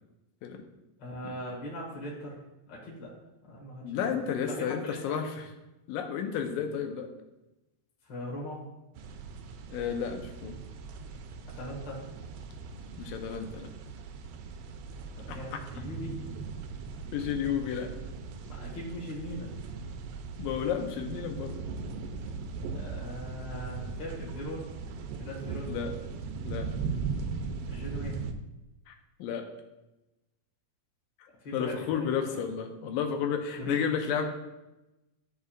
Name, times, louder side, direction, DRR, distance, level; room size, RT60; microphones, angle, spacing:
voice 1, 1.0-2.4 2.7-3.1 3.5-5.2 8.1-8.6 11.5-12.0 15.3-16.2 18.4-19.5 22.7-24.7 25.2-25.7 27.7-28.2 31.4-32.4 33.6-33.8, equal, 45° left, -3 dB, 1.6 m, -40 dB
voice 2, 3.8-5.5 5.9-7.1 9.7-10.6 13.0-13.7 15.3-15.6 17.1-17.9 20.4-21.6 25.7-26.0 26.5-26.7 28.9-29.0 29.2-29.5 31.5-34.3, left 7 dB, 80° left, 5 dB, 2.5 m, -32 dB
sound 1, 8.9-28.3, right 5 dB, 85° right, 2.4 m, -39 dB
13.0 x 6.6 x 2.5 m, 0.99 s
omnidirectional pair, 4.1 m